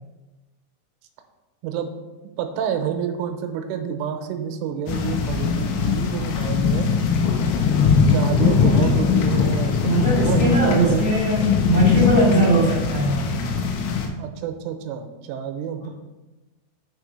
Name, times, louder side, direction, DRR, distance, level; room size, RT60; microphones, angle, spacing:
voice 1, 2.4-6.9 8.1-9.9 10.2-11.1 14.2-15.9, right 8 dB, 80° right, 5 dB, 3.2 m, -28 dB
sound 1, 4.9-14.1, left 5 dB, 80° left, 3.8 m, -21 dB
voice 2, 9.8-13.2, right 1 dB, 45° left, -6 dB, 2.9 m, -20 dB
9.6 x 5.3 x 5.4 m, 1.1 s
omnidirectional pair, 6.0 m